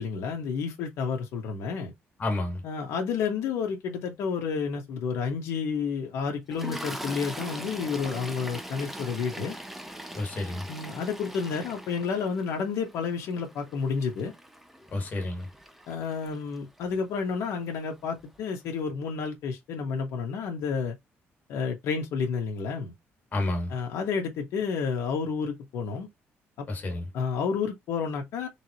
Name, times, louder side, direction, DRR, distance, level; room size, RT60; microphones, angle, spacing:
voice 1, 0.0-1.9 2.6-9.6 10.7-14.3 15.9-20.9 21.5-22.9 23.7-26.1 26.6-26.7 27.1-28.5, left 5 dB, 85° left, 1.5 m, -30 dB
voice 2, 2.2-2.6 10.1-10.7 14.9-15.5 23.3-23.7 26.7-27.1, left 2 dB, 35° left, 1.7 m, -30 dB
Toilet flush, 6.5-16.8 17.7-17.9 18.2-18.4, right 1 dB, 5° right, 0.6 m, -41 dB
3.7 x 3.4 x 2.9 m
cardioid pair, 145°, 5 cm